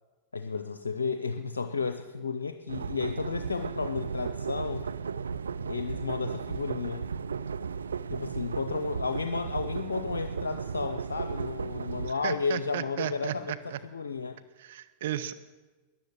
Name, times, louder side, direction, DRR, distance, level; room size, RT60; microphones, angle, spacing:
voice 1, 0.3-4.9 5.7-7.1 8.1-14.4, left 5 dB, 90° left, 9 dB, 0.6 m, -33 dB
sound 1, 2.7-12.1, right 6 dB, 85° right, 0.4 m, -35 dB
voice 2, 12.2-13.8 14.6-15.3, right 11 dB, 70° right, 11 dB, 0.9 m, -34 dB
13.0 x 10.5 x 8.5 m, 1.3 s
hypercardioid pair, 100°, 0 cm